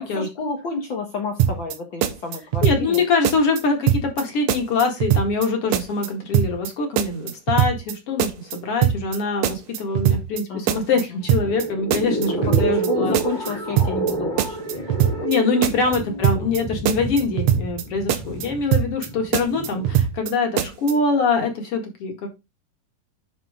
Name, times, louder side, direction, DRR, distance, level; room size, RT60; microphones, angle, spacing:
voice 1, 0.0-3.0 10.5-11.2 12.5-15.3 15.6-16.5, left 4 dB, 65° left, 3 dB, 1.1 m, -32 dB
sound 1, 1.4-3.0 3.2-3.6 3.9-4.2 4.5-5.5 5.7-6.1 6.3-6.7 7.0-7.9 8.2-8.6 8.8-9.2 9.4-10.4 10.7-11.0 11.3-11.6 11.9-12.9 13.1-13.5 13.8-14.1 14.4-15.4 15.6-16.0 16.2-16.6 16.9-17.8 18.1-18.5 18.7-19.1 19.3-20.3 20.6-20.9, right 11 dB, 75° right, 1.6 m, -21 dB
voice 2, 2.6-13.1 15.2-22.4, left 4 dB, 45° left, 3 dB, 2.4 m, -24 dB
sound 2, 11.2-20.0, right 2 dB, 10° left, 1.3 m, -29 dB
11.0 x 4.3 x 3.7 m, 0.23 s
omnidirectional pair, 4.2 m